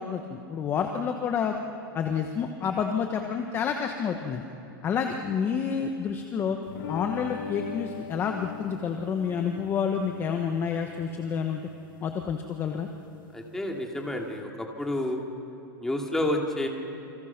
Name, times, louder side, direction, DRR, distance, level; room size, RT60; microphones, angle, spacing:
voice 1, 0.0-1.6 1.9-4.4 4.8-6.6 6.9-11.6 12.0-12.9, left 7 dB, 20° left, 4 dB, 1.2 m, -29 dB
sound 1, 6.7-14.4, left 8 dB, 70° left, 2.2 m, -42 dB
voice 2, 13.3-15.2 15.8-16.7, left 1 dB, 5° left, 0 dB, 2.6 m, -29 dB
29.0 x 26.5 x 6.0 m, 2.9 s
supercardioid pair, 160°, 11 cm